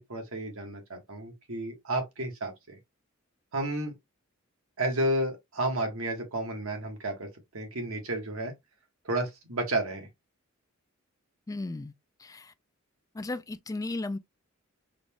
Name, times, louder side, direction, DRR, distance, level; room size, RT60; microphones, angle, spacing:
voice 1, 0.0-2.8 3.5-3.9 4.8-7.3 7.5-8.5 9.0-10.1, right 1 dB, 80° right, 1.4 m, -31 dB
voice 2, 11.5-11.9 12.2-12.5 13.1-14.2, left 2 dB, 15° left, 0.3 m, -35 dB
3.9 x 2.3 x 3.4 m
head